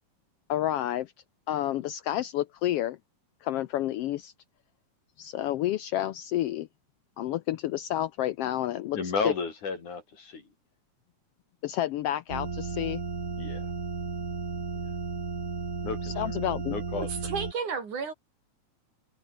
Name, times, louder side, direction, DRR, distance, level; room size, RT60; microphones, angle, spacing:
voice 1, 0.5-1.1 1.5-3.0 3.4-4.3 5.2-6.7 7.2-9.0 9.2-9.3 11.6-13.0 16.0-16.7, left 13 dB, 85° left, 1.3 m, -30 dB
voice 2, 8.9-10.4 13.4-13.7 15.8-16.1 16.7-17.1, left 5 dB, 70° left, 6.2 m, -32 dB
sound 1, 12.3-17.5, right 4 dB, 25° right, 2.4 m, -34 dB
voice 3, 16.9-18.1, right 5 dB, 70° right, 5.5 m, -32 dB
omnidirectional pair, 3.7 m